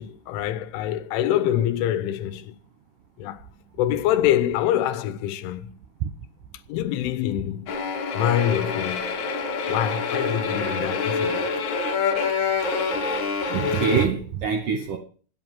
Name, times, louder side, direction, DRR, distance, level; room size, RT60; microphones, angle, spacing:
voice 1, 0.0-2.6 3.2-3.4 3.8-5.7 6.7-7.8 8.1-9.1 9.7-11.5, left 11 dB, 85° left, 3.3 m, -25 dB
sound 1, 7.7-14.1, left 4 dB, 60° left, 2.0 m, -26 dB
voice 2, 13.5-15.0, right 6 dB, 75° right, 1.8 m, -24 dB
10.5 x 8.6 x 7.4 m
omnidirectional pair, 5.4 m